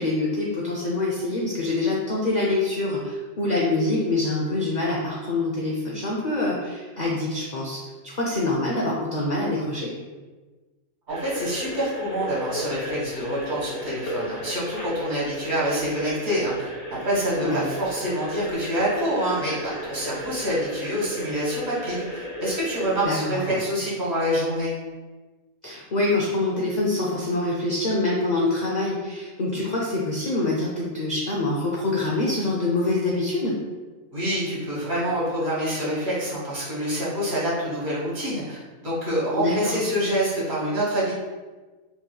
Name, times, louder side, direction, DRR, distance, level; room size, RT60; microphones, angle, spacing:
voice 1, 0.0-9.9 17.4-17.6 23.0-23.6 25.6-33.6 39.4-39.7, left 2 dB, 60° left, -4 dB, 0.4 m, -25 dB
sound 1, 11.1-23.1, left 1 dB, 85° left, 2.0 m, -35 dB
voice 2, 11.1-16.7 17.0-19.6 19.8-24.7 34.1-41.1, equal, 35° right, -6 dB, 1.4 m, -26 dB
5.5 x 3.0 x 2.2 m, 1.3 s
omnidirectional pair, 1.5 m